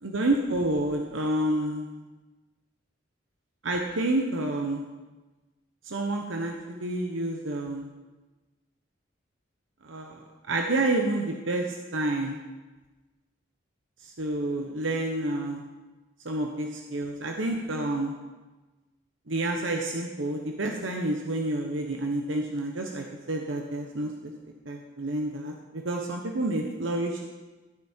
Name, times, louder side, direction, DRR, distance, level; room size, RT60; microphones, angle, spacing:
voice 1, 0.0-1.9 3.6-4.8 5.8-7.9 9.8-11.6 11.9-12.3 14.0-15.6 16.2-18.1 19.3-24.3 24.7-27.2, right 2 dB, 80° right, 2 dB, 1.0 m, -29 dB
14.5 x 8.4 x 4.5 m, 1.2 s
head